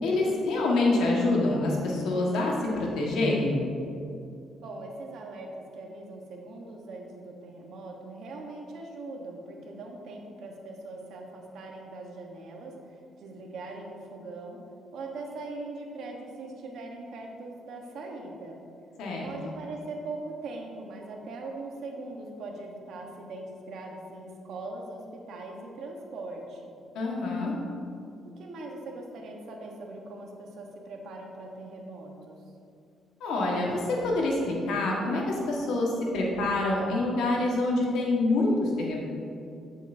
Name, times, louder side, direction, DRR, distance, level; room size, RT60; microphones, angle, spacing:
voice 1, 0.0-3.6 19.0-19.3 26.9-27.5 33.2-39.0, left 2 dB, 85° left, -2 dB, 1.5 m, -26 dB
voice 2, 4.6-14.6 14.9-18.6 19.2-26.7 28.2-32.4, right 2 dB, 75° right, 1 dB, 1.1 m, -41 dB
9.1 x 7.1 x 2.7 m, 2.5 s
cardioid pair, 90°, 0 cm